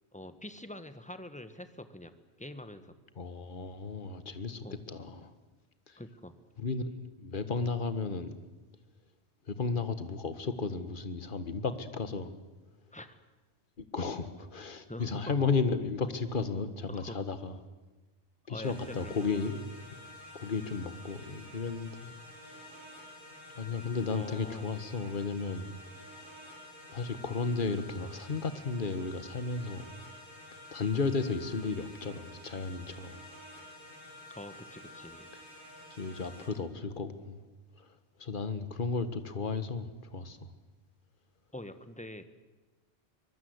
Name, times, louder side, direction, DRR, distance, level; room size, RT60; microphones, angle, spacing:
voice 1, 0.1-3.0 4.6-4.8 6.0-6.4 12.9-13.2 14.9-15.3 16.9-17.2 18.5-19.5 24.1-24.7 34.3-35.3 41.5-42.2, left 1 dB, 5° left, 10 dB, 1.3 m, -45 dB
voice 2, 3.2-5.3 5.9-6.0 6.6-6.8 7.2-8.3 9.5-12.3 13.8-17.5 18.5-19.6 20.3-22.1 22.5-22.7 23.6-25.7 26.9-29.9 30.7-33.2 35.9-37.4 37.8-37.9 38.2-40.5, left 4 dB, 50° left, 10 dB, 1.6 m, -34 dB
sound 1, 18.6-36.5, left 1 dB, 45° right, 6.2 m, -50 dB
24.0 x 21.5 x 8.0 m, 1.2 s
omnidirectional pair, 1.1 m